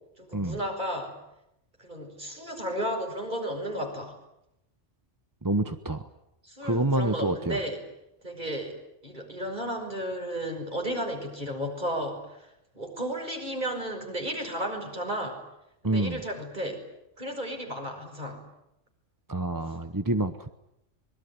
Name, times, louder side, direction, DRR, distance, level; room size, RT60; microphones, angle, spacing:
voice 1, 0.2-1.2 1.8-4.2 6.4-7.8 8.2-8.8 9.0-12.5 12.7-15.4 15.8-16.8 17.2-18.4, equal, 40° right, 3 dB, 6.0 m, -33 dB
voice 2, 5.4-6.0 6.6-7.6 15.8-16.2 19.3-20.5, right 2 dB, 20° right, 9 dB, 0.9 m, -27 dB
25.5 x 22.5 x 9.7 m, 0.85 s
omnidirectional pair, 1.2 m